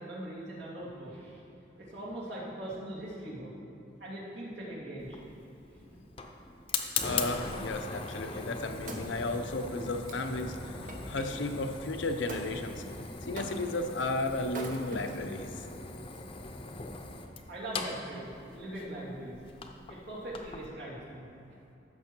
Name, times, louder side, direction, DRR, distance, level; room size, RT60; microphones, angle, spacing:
voice 1, 0.0-1.4 1.7-3.5 4.0-5.2 5.7-6.0 17.5-19.4 19.9-21.3, right 1 dB, 65° right, -6 dB, 2.7 m, -41 dB
Fire, 5.0-20.7, left 4 dB, 30° left, 0.7 m, -40 dB
voice 2, 7.0-12.8 13.2-15.6, left 2 dB, 90° left, 6 dB, 0.8 m, -34 dB
Wood, 8.8-11.3 12.3-12.5 13.4-13.9 14.5-15.5 16.1-16.2, right 2 dB, 45° right, 1.0 m, -44 dB
14.5 x 6.3 x 4.5 m, 2.8 s
head